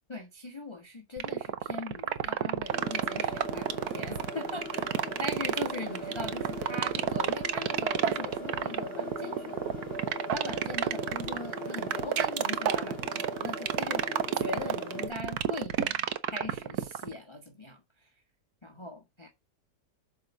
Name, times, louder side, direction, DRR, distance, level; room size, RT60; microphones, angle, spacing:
voice 1, 0.1-9.8 10.3-16.1 16.3-18.1 18.6-19.3, left 2 dB, 20° left, 1.2 m, -40 dB
sound 1, 1.2-17.1, right 10 dB, 90° right, 1.3 m, -29 dB
sound 2, 2.6-8.6, left 3 dB, 70° left, 3.1 m, -53 dB
sound 3, 2.7-15.1, equal, 40° left, 3.3 m, -40 dB
7.2 x 4.9 x 6.9 m
omnidirectional pair, 1.6 m